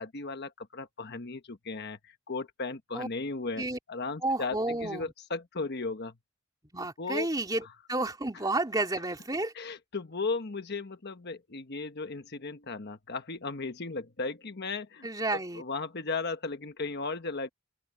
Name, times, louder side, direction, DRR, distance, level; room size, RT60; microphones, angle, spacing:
voice 1, 0.0-6.1 7.0-7.3 9.5-17.5, left 3 dB, 55° left, 1.2 m, -36 dB
voice 2, 4.2-5.1 6.7-9.5 15.0-15.6, right 2 dB, 20° right, 3.1 m, -31 dB
open air
head